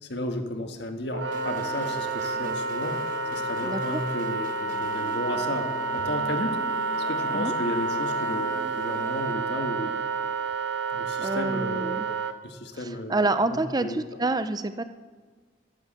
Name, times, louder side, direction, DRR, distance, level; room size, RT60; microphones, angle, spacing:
voice 1, 0.0-3.0 3.3-6.6 7.0-10.0 10.9-12.0 12.4-14.0, left 1 dB, 65° left, 6 dB, 1.6 m, -33 dB
Wind instrument woodwind instrument, 1.1-12.3, right 4 dB, 75° right, 1.0 m, -29 dB
sound 1, 1.3-9.3, right 3 dB, 45° right, 1.4 m, -42 dB
voice 2, 3.6-4.0 7.3-7.5 11.2-12.1 12.7-14.8, right 2 dB, 20° right, 11 dB, 0.6 m, -28 dB
14.0 x 11.0 x 6.5 m, 1.5 s
head